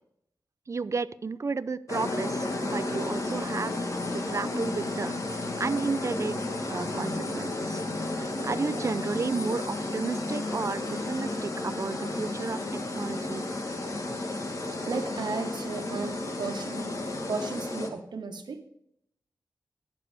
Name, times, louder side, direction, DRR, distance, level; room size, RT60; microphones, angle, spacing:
voice 1, 0.7-3.8 4.1-6.4 6.7-7.8 8.1-12.6 12.9-13.4, right 4 dB, 45° right, 16 dB, 0.5 m, -32 dB
sound 1, 1.9-17.9, left 2 dB, 45° left, 1.6 m, -32 dB
voice 2, 14.7-16.9 17.3-18.6, right 4 dB, 80° right, 5 dB, 1.4 m, -35 dB
18.0 x 6.8 x 3.4 m, 0.76 s
wide cardioid pair, 95°, 7 cm